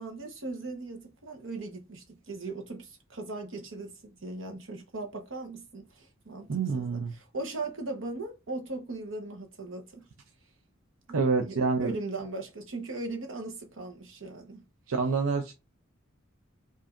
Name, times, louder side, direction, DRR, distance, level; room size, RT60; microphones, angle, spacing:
voice 1, 0.0-6.5 6.7-10.0 11.1-14.6, right 3 dB, 65° right, 1.0 m, -38 dB
voice 2, 6.5-7.1 11.1-11.9 14.9-15.5, right 4 dB, 90° right, 0.5 m, -27 dB
4.9 x 2.7 x 2.5 m
head